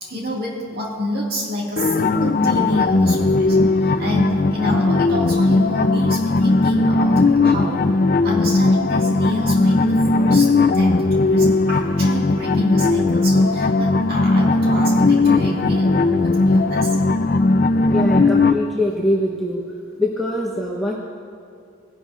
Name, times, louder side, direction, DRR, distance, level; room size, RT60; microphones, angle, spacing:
voice 1, 0.0-7.9 8.2-17.0, equal, 50° right, -2 dB, 2.0 m, -28 dB
sound 1, 1.8-18.5, left 3 dB, 45° left, 0.4 m, -17 dB
voice 2, 17.9-19.6 20.0-20.9, left 1 dB, ahead, -5 dB, 0.9 m, -23 dB
18.5 x 11.0 x 2.5 m, 2.4 s
head